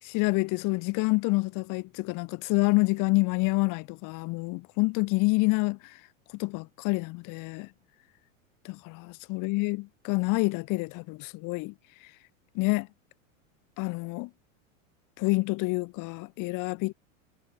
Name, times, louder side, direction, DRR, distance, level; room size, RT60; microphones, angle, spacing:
voice 1, 0.0-6.0 6.4-7.7 8.7-11.7 12.6-12.9 13.8-14.3 15.2-16.9, left 25 dB, 50° left, 1.6 m, -27 dB
supercardioid pair, 115°, 40 cm